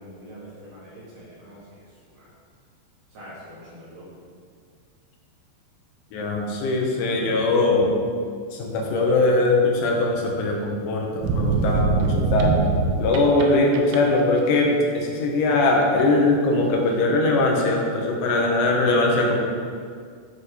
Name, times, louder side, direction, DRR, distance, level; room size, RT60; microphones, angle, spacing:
voice 1, 0.0-2.3 3.1-4.2, equal, 50° right, -9 dB, 3.1 m, -44 dB
voice 2, 6.1-8.0 8.5-12.6 13.0-19.4, left 2 dB, 80° left, 0 dB, 3.6 m, -21 dB
sound 1, 11.2-13.4 13.7-14.2, right 4 dB, 85° right, 3.3 m, -22 dB
13.0 x 4.6 x 5.0 m, 2.1 s
omnidirectional pair, 5.6 m